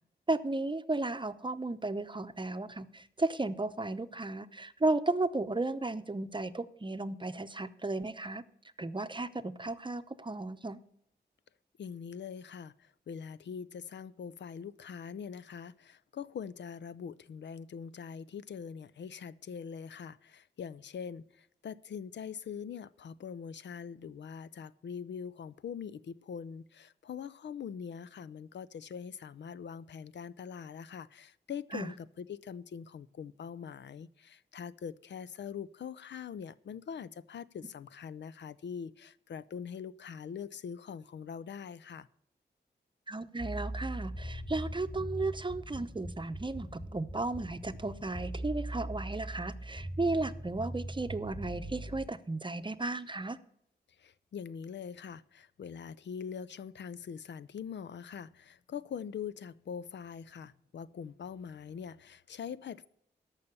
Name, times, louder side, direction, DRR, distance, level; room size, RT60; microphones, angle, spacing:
voice 1, 0.3-8.4 8.8-10.8 31.7-31.9 43.1-53.4, right 2 dB, 25° right, 0.7 m, -34 dB
voice 2, 11.8-42.1 54.0-62.9, left 7 dB, 75° left, 0.5 m, -43 dB
sound 1, 43.4-52.1, right 1 dB, 40° left, 2.8 m, -41 dB
13.5 x 5.6 x 7.0 m
cardioid pair, 55°, 18 cm